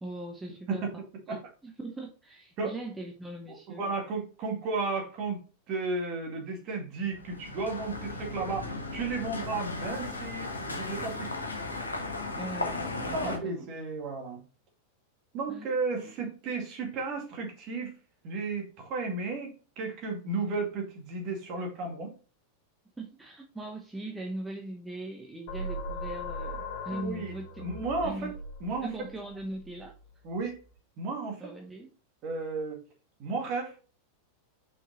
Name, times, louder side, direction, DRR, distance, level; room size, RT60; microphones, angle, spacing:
voice 1, 0.0-1.0 1.3-3.8 12.4-13.7 15.5-15.7 16.0-16.3 23.0-27.6 28.0-28.3 28.8-29.9 31.4-32.0, right 1 dB, 10° right, 2 dB, 0.9 m, -40 dB
voice 2, 3.5-5.4 5.7-11.3 13.1-14.4 15.3-18.0 18.2-22.1 26.9-28.3 28.6-29.1 30.2-30.6 31.0-31.5 32.2-32.8 33.2-33.8, right 3 dB, 40° right, 1 dB, 2.3 m, -33 dB
sound 1, 7.1-13.4, left 2 dB, 80° left, 1.1 m, -36 dB
sound 2, 25.5-30.7, left 1 dB, 40° left, 2.3 m, -40 dB
5.9 x 4.7 x 4.1 m, 0.36 s
figure-of-eight pair, 90°, 0 cm